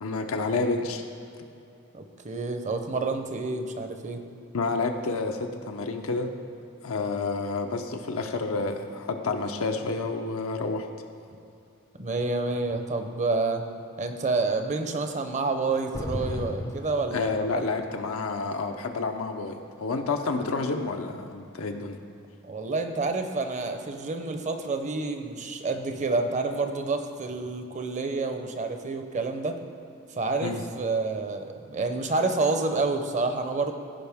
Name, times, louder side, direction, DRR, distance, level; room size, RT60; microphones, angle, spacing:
voice 1, 0.0-1.0 4.5-6.3 6.8-10.9 17.1-22.0 30.4-30.6, left 3 dB, 85° left, 4 dB, 0.6 m, -29 dB
voice 2, 1.9-4.3 12.0-13.6 14.0-17.9 22.4-29.6 30.1-33.7, right 3 dB, 35° right, 6 dB, 0.6 m, -29 dB
sound 1, 15.9-17.9, left 1 dB, 15° left, 0.4 m, -34 dB
15.5 x 5.1 x 3.5 m, 2.7 s
head